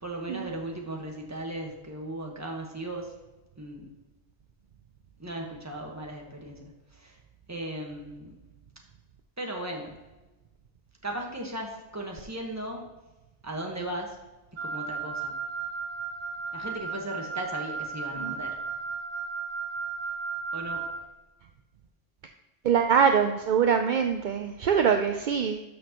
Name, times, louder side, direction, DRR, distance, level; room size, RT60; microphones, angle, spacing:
voice 1, 0.0-3.1 3.6-3.9 5.2-6.6 6.9-7.2 7.5-8.4 9.4-10.0 11.0-12.9 13.4-14.2 14.6-15.3 16.5-18.6 20.5-20.8, right 1 dB, 15° right, 0 dB, 1.3 m, -37 dB
Wind instrument woodwind instrument, 14.6-21.0, right 5 dB, 85° right, 1.8 m, -35 dB
voice 2, 22.6-25.6, right 7 dB, 60° right, 6 dB, 0.5 m, -23 dB
12.0 x 6.1 x 3.0 m, 1.1 s
omnidirectional pair, 1.2 m